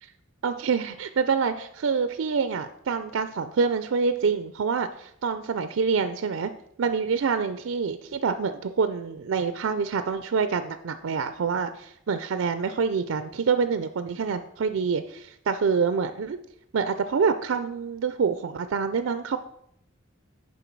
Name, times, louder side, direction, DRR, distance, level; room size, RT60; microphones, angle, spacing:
voice 1, 0.4-6.5 6.8-16.4 16.7-19.4, right 5 dB, 80° right, 10 dB, 0.4 m, -26 dB
10.5 x 4.4 x 4.5 m, 0.73 s
head